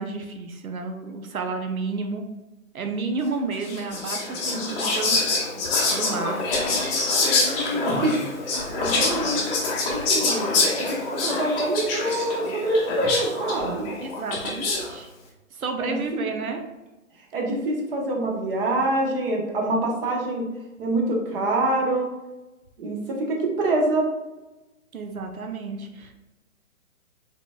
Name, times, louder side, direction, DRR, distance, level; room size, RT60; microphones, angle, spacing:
voice 1, 0.0-2.2 2.7-5.2 5.9-6.4 8.6-9.0 14.0-15.1 15.5-16.6 24.9-26.1, right 4 dB, 85° right, 5 dB, 0.7 m, -31 dB
Whispering, 3.6-14.9, left 3 dB, 15° left, 0.7 m, -25 dB
voice 2, 6.5-6.9 7.2-8.2 8.4-9.6 9.8-13.9 15.8-16.2 17.3-20.5 20.8-22.1 22.8-24.1, right 2 dB, 40° right, 0 dB, 1.0 m, -26 dB
4.8 x 3.6 x 2.2 m, 1.1 s
figure-of-eight pair, 130°, 42 cm